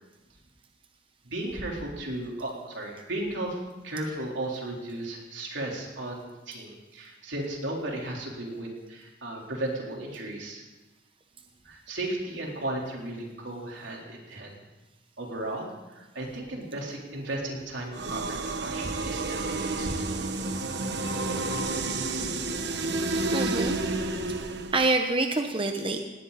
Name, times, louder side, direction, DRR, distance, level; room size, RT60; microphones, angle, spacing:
voice 1, 1.2-10.6 11.6-14.6 15.2-20.1, right 1 dB, 80° right, -1 dB, 4.0 m, -35 dB
sound 1, 17.9-24.9, right 2 dB, 65° right, 1.3 m, -30 dB
voice 2, 23.3-23.8 24.7-26.0, right 2 dB, 30° right, 5 dB, 1.0 m, -26 dB
18.5 x 18.0 x 4.2 m, 1.1 s
head